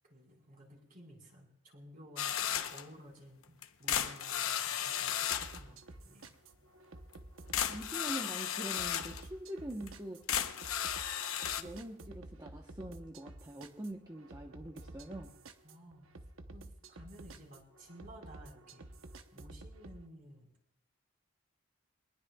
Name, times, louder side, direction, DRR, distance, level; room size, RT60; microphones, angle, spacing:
voice 1, 0.1-3.5 3.8-6.3 15.6-16.1 16.5-18.9 19.3-20.5, equal, 45° right, -1 dB, 4.5 m, -54 dB
sound 1, 2.2-2.9 3.6-5.6 7.1-7.2 7.5-9.2 9.9-10.0 10.3-11.6, left 9 dB, 85° left, 0.9 m, -34 dB
sound 2, 5.3-20.0, right 2 dB, 75° right, 1.0 m, -52 dB
voice 2, 7.7-10.2 11.6-15.3, right 1 dB, 20° right, 1 dB, 1.0 m, -44 dB
22.5 x 20.0 x 2.3 m, 0.87 s
head